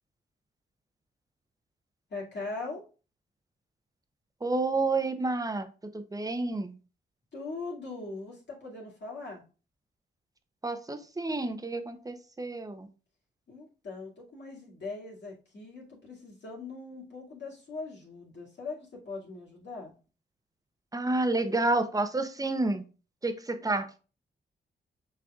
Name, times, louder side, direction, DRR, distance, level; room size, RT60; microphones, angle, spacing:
voice 1, 2.1-2.8 7.3-9.4 13.5-19.9, left 3 dB, 60° left, -4 dB, 2.2 m, -40 dB
voice 2, 4.4-6.8 10.6-12.9 20.9-22.8 23.2-23.9, right 2 dB, 20° right, 9 dB, 0.7 m, -30 dB
6.0 x 3.4 x 2.4 m, 0.35 s
cardioid pair, 55°, 20 cm